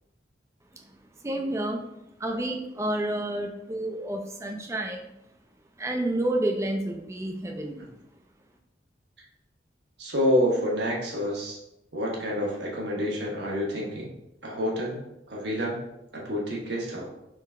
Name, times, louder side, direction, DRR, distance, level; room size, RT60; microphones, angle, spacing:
voice 1, 1.2-1.9 2.2-5.1 5.8-7.9, right 1 dB, 15° right, 3 dB, 0.4 m, -30 dB
voice 2, 10.0-11.6 11.9-14.1 14.4-15.8 16.1-17.1, equal, 65° right, -2 dB, 1.1 m, -28 dB
3.7 x 3.3 x 3.6 m, 0.87 s
head